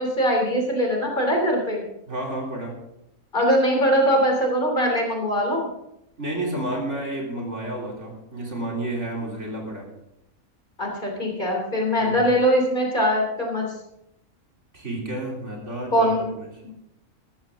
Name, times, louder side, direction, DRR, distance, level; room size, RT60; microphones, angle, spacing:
voice 1, 0.0-1.8 3.3-5.7 10.8-13.6 15.9-16.2 16.6-16.7, equal, 35° left, 1 dB, 3.4 m, -22 dB
voice 2, 2.1-2.9 6.2-9.9 12.0-12.3 14.7-16.7, right 1 dB, 55° right, -1 dB, 3.7 m, -31 dB
14.0 x 14.0 x 3.7 m, 0.83 s
omnidirectional pair, 1.5 m